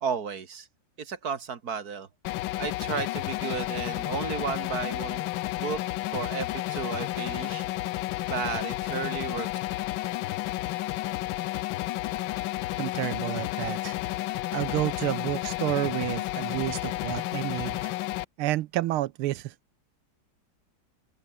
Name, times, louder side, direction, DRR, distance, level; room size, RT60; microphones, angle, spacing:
voice 1, 0.0-0.7 1.0-2.1 2.6-5.3 5.6-5.8 6.1-8.0 8.3-9.5, right 6 dB, 50° right, 1.9 m, -33 dB
sound 1, 2.2-18.2, left 16 dB, 75° left, 1.2 m, -31 dB
voice 2, 12.8-14.0 14.5-17.9 18.4-19.5, right 15 dB, 80° right, 1.6 m, -30 dB
open air
omnidirectional pair, 2.4 m